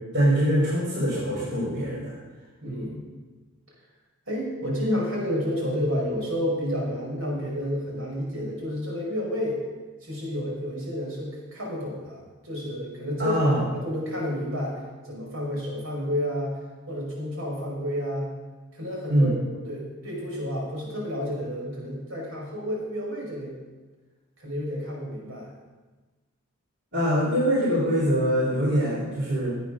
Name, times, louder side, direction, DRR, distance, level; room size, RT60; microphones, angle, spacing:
voice 1, 0.1-2.1 13.2-13.7 19.1-19.4 26.9-29.5, equal, 50° right, -6 dB, 3.9 m, -23 dB
voice 2, 2.6-3.0 4.3-9.6 10.0-13.4 13.7-16.6 16.9-18.3 18.7-19.4 19.7-23.5 24.4-25.5, equal, 70° right, -2 dB, 5.3 m, -30 dB
15.5 x 8.8 x 6.4 m, 1.3 s
head